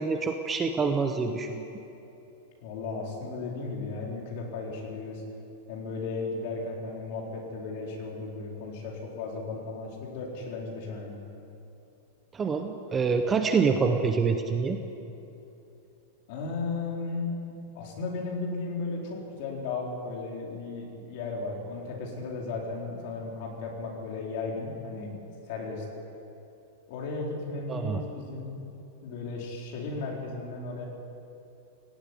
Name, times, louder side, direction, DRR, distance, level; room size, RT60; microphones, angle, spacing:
voice 1, 0.0-1.7 12.3-14.8 27.7-28.0, right 5 dB, 10° right, 6 dB, 0.7 m, -26 dB
voice 2, 2.6-5.2 5.7-11.2 16.3-17.3 17.7-25.2 25.5-25.9 26.9-28.6 29.0-30.8, left 3 dB, 40° left, -1 dB, 4.1 m, -35 dB
18.0 x 16.0 x 9.9 m, 2.9 s
supercardioid pair, 180°, 0 cm